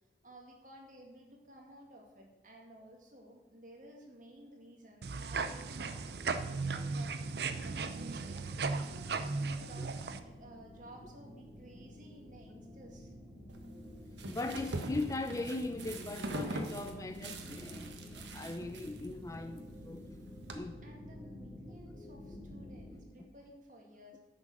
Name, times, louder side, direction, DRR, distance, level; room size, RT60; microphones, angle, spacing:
voice 1, 0.2-8.5 8.8-13.1 20.8-24.2, right 1 dB, 45° right, 0 dB, 2.1 m, -55 dB
sound 1, 5.0-10.2, right 4 dB, 65° right, 0.6 m, -36 dB
sound 2, 8.0-23.0, left 1 dB, 15° right, 2.2 m, -51 dB
sound 3, 13.5-20.5, right 1 dB, 85° right, 1.3 m, -43 dB
voice 2, 14.3-20.0 20.5-20.8, left 2 dB, 20° left, 8 dB, 0.5 m, -39 dB
10.5 x 6.5 x 6.3 m, 1.1 s
head